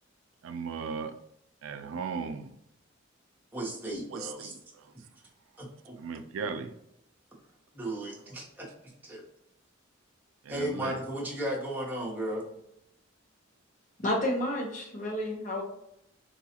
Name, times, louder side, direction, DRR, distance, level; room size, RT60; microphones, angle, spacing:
voice 1, 0.4-1.1 1.6-2.5 4.1-4.8 6.0-6.7 10.4-11.0, right 5 dB, 85° right, 8 dB, 0.3 m, -37 dB
voice 2, 3.5-4.5 5.6-6.0 7.7-8.7 9.0-9.2 10.5-12.4, right 1 dB, 10° right, -5 dB, 0.9 m, -35 dB
voice 3, 14.0-15.6, left 1 dB, 40° left, 0 dB, 0.8 m, -30 dB
3.9 x 2.3 x 2.8 m, 0.80 s
head